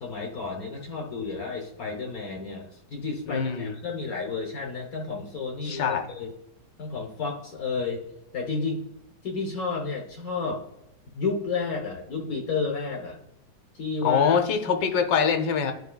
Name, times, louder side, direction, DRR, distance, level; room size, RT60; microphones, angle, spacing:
voice 1, 0.0-6.3 6.8-8.0 8.3-8.9 9.2-10.6 11.1-13.2 13.7-14.4, left 4 dB, 60° left, 1 dB, 1.3 m, -31 dB
voice 2, 3.3-3.7 5.6-6.1 14.0-15.7, left 6 dB, 85° left, 6 dB, 1.4 m, -24 dB
11.0 x 4.5 x 2.2 m, 0.85 s
omnidirectional pair, 1.9 m